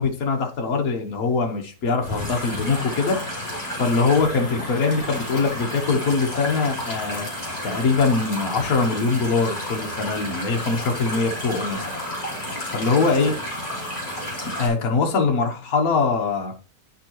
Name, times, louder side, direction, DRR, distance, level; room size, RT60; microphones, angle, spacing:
voice 1, 0.0-3.2 3.8-7.3 7.6-11.9 12.7-13.3 14.6-16.5, left 4 dB, 55° left, 2 dB, 1.6 m, -22 dB
sound 1, 2.0-14.7, left 1 dB, 20° left, 3.5 m, -31 dB
11.0 x 4.8 x 3.0 m, 0.36 s
omnidirectional pair, 1.9 m